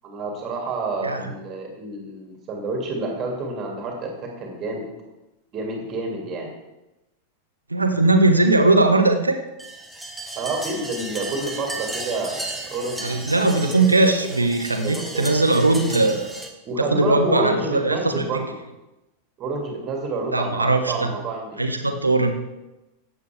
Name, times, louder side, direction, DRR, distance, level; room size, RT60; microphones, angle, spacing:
voice 1, 0.0-4.9 5.5-6.5 10.4-13.5 13.9-14.4 14.8-15.3 16.6-18.4 19.4-21.6, right 3 dB, 30° right, 1 dB, 2.6 m, -29 dB
voice 2, 7.7-9.4 13.0-16.3 16.8-18.4 20.3-21.1 21.6-22.3, right 2 dB, 80° right, 6 dB, 1.1 m, -19 dB
sound 1, 9.6-16.5, right 1 dB, 5° right, 1.3 m, -34 dB
14.5 x 8.5 x 3.5 m, 0.98 s
figure-of-eight pair, 90°, 0 cm